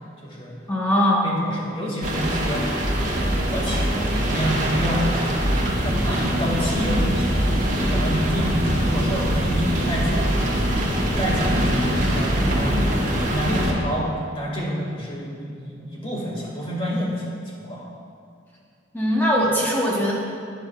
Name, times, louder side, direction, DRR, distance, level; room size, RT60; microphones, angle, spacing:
voice 1, 0.0-0.6 1.2-2.7 3.1-7.4 7.8-10.4 10.9-17.1 17.6-17.9, equal, 30° left, -4 dB, 2.1 m, -28 dB
voice 2, 0.7-1.3 18.9-20.1, equal, 10° left, -5 dB, 1.0 m, -20 dB
sound 1, 2.0-13.7, equal, 40° right, 1.3 m, -23 dB
13.5 x 9.4 x 2.4 m, 2.3 s
head